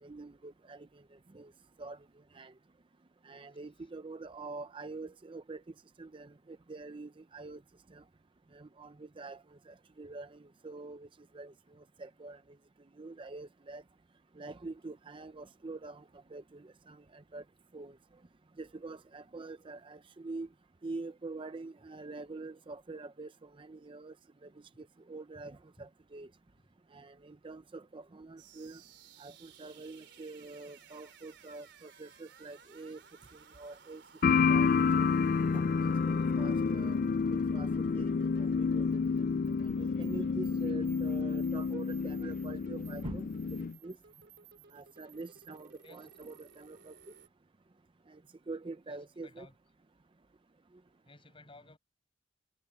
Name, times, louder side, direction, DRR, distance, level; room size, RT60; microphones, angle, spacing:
voice 1, 0.0-1.0 1.3-1.5 1.8-2.0 2.3-2.5 3.2-5.6 6.0-7.6 7.9-8.0 8.5-11.1 11.3-12.4 13.0-13.8 14.4-16.0 16.3-17.4 17.7-18.0 18.6-20.5 20.8-24.1 24.4-24.5 24.8-26.3 26.9-28.8 29.2-33.0 33.3-34.0 34.5-34.7 35.0-35.1 35.5-37.0 37.3-38.9 39.6-44.0 44.7-47.0 48.1-48.2 48.5-49.5, right 3 dB, 30° right, 0.5 m, -45 dB
sound 1, 28.4-47.3, right 7 dB, 65° right, 3.9 m, -58 dB
sound 2, 34.2-43.7, left 5 dB, 50° left, 0.4 m, -29 dB
voice 2, 48.9-49.5 51.0-51.8, left 2 dB, 30° left, 7.3 m, -56 dB
head